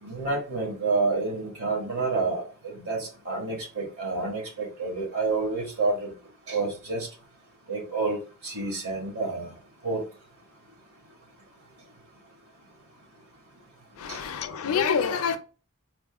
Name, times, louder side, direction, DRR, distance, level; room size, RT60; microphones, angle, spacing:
voice 1, 0.0-2.4 2.7-6.1 6.5-7.1 7.7-8.2 8.4-9.5 9.8-10.0 14.1-14.2, right 3 dB, 70° right, 2.0 m, -28 dB
voice 2, 14.0-15.4, left 6 dB, 65° left, 0.5 m, -26 dB
4.2 x 2.1 x 3.5 m
head